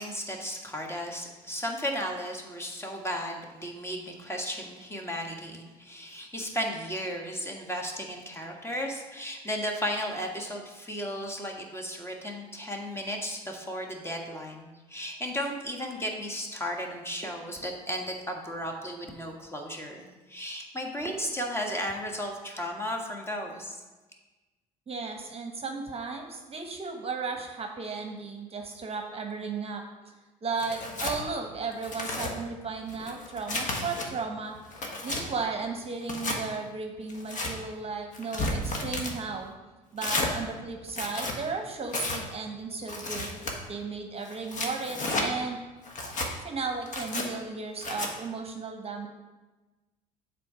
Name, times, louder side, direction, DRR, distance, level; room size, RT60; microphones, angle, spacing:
voice 1, 0.0-23.8, equal, 15° left, 1 dB, 1.5 m, -35 dB
voice 2, 24.9-29.8 30.4-34.5 35.0-39.5 39.9-43.3 43.7-45.6 46.0-49.1, right 4 dB, 35° right, 4 dB, 1.0 m, -35 dB
Tearing, 30.6-31.2 31.7-32.3 32.9-34.1 34.5-35.2 36.0-36.4 37.1-37.5 38.1-39.1 40.0-40.3 40.9-41.4 41.9-42.2 42.9-43.5 44.3-45.3 45.9-46.3 46.9-47.3 47.8-48.1, left 2 dB, 45° left, 1.4 m, -32 dB
7.5 x 4.0 x 5.0 m, 1.2 s
hypercardioid pair, 60°, 18 cm